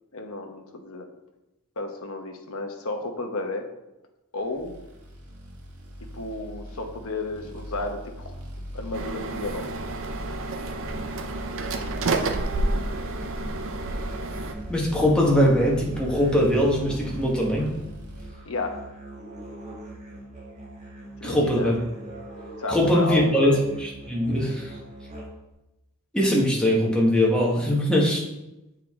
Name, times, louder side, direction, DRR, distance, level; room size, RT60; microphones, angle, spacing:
voice 1, 0.1-1.1 1.8-3.7 4.3-4.7 6.1-8.4 8.7-9.7 18.4-18.8 21.2-21.8 22.6-23.6, left 2 dB, 65° left, 4 dB, 0.9 m, -32 dB
sound 1, 4.5-18.3, equal, 85° right, 1.5 m, -40 dB
sound 2, 8.9-14.5, right 2 dB, 60° right, 0.6 m, -29 dB
Musical instrument, 10.8-25.5, right 2 dB, 30° right, 1.9 m, -42 dB
voice 2, 14.7-17.7 21.2-21.8 22.7-24.7 26.1-28.2, equal, 5° left, -3 dB, 1.3 m, -21 dB
8.0 x 4.6 x 3.6 m, 0.95 s
head